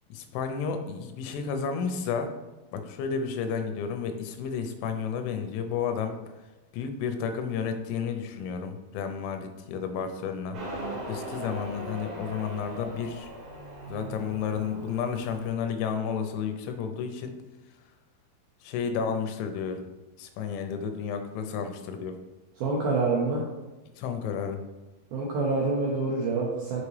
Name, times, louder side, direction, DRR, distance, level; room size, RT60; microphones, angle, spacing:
voice 1, 0.1-2.3 2.7-6.2 6.7-10.6 11.1-13.3 13.9-17.3 18.6-19.9 20.2-22.2 24.0-24.6, left 6 dB, 90° left, 7 dB, 3.1 m, -31 dB
Motorcycle, 10.5-15.5, right 1 dB, 55° right, 2.7 m, -39 dB
voice 2, 22.6-23.4 25.1-26.8, right 3 dB, 80° right, -3 dB, 2.2 m, -26 dB
7.0 x 5.1 x 3.2 m, 1.1 s
omnidirectional pair, 5.3 m